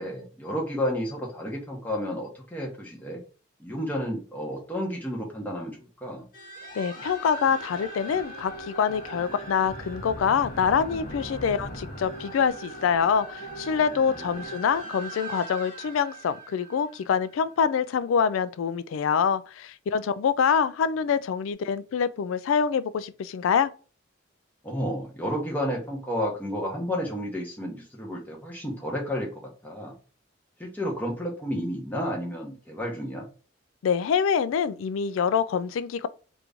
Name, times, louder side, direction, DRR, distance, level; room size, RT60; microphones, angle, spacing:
voice 1, 0.0-3.2 3.6-6.2 14.1-14.3 24.6-29.9 30.6-33.3, equal, 10° left, 0.9 m, -31 dB
sound 1, 6.3-17.6, right 1 dB, 45° left, 0.8 m, -39 dB
voice 2, 6.7-23.7 33.8-36.1, left 7 dB, 80° left, 0.3 m, -25 dB
3.0 x 2.6 x 3.4 m
head